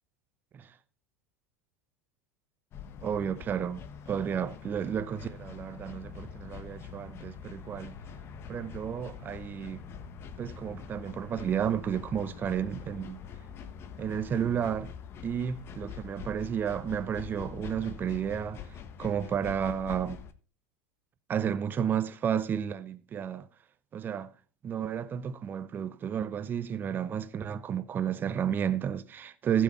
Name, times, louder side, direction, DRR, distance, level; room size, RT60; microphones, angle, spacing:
sound 1, 2.7-20.3, left 7 dB, 40° left, 1.2 m, -44 dB
voice 1, 3.0-8.0 8.5-9.8 10.4-13.2 14.0-14.9 15.2-18.6 19.0-20.2 21.3-23.5 23.9-24.3 24.6-29.6, right 8 dB, 30° right, 0.9 m, -32 dB
15.0 x 6.5 x 4.2 m
hypercardioid pair, 85°, 6 cm